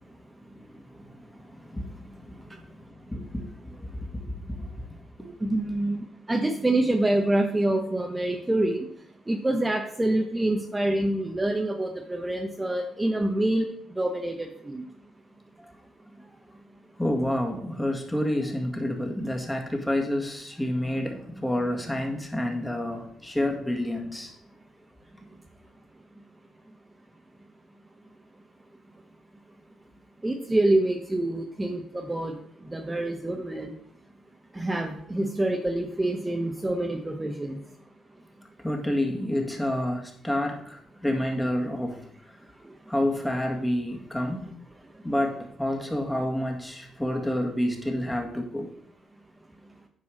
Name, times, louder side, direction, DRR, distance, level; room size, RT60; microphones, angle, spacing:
voice 1, 0.7-5.3 15.6-15.7 17.0-24.3 38.6-42.1 42.9-44.5 45.0-48.7, left 1 dB, 10° left, 2 dB, 2.0 m, -29 dB
voice 2, 5.4-8.9 9.3-13.7 14.0-14.8 30.2-32.3 32.7-33.7 34.5-37.6, right 1 dB, 15° right, 2 dB, 1.0 m, -26 dB
9.8 x 4.6 x 6.3 m, 0.67 s
cardioid pair, 90°, 0 cm